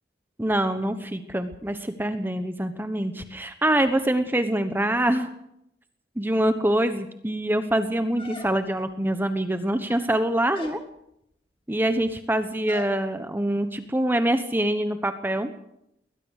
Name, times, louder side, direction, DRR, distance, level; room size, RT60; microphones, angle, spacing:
voice 1, 0.4-5.3 6.2-10.8 11.7-15.5, right 1 dB, 10° right, 9 dB, 1.1 m, -25 dB
sound 1, 8.2-8.9 9.7-10.2 10.5-10.9 12.7-13.0, left 2 dB, 30° left, 3.3 m, -41 dB
21.5 x 19.5 x 6.5 m, 0.79 s
head